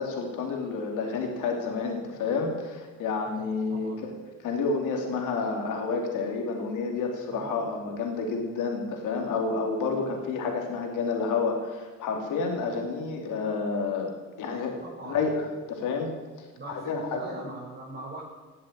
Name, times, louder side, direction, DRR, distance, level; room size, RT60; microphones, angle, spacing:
voice 1, 0.0-4.1 4.4-14.1 14.4-14.7 15.0-15.3 15.7-16.1 16.7-17.4, left 4 dB, 90° left, 2 dB, 3.1 m, -29 dB
voice 2, 3.2-4.0 7.3-7.8 14.8-15.2 16.5-18.2, right 2 dB, 35° right, -7 dB, 6.0 m, -41 dB
17.5 x 7.7 x 8.7 m, 1.3 s
cardioid pair, 90°, 30 cm